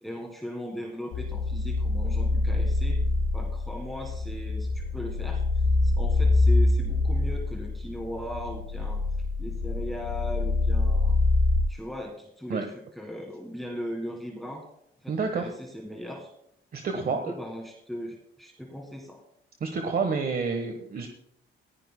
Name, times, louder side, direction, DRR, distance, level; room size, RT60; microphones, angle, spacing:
voice 1, 0.0-3.0 3.3-9.0 9.4-11.2 11.7-12.7 12.9-14.6 15.0-16.3 16.9-19.2, equal, ahead, 1 dB, 1.7 m, -38 dB
sound 1, 1.1-11.6, left 2 dB, 80° left, 2.9 m, -25 dB
voice 2, 15.1-15.5 16.7-17.3 19.6-21.1, right 4 dB, 45° right, 5 dB, 1.2 m, -29 dB
19.5 x 15.0 x 2.2 m, 0.74 s
cardioid pair, 115°, 21 cm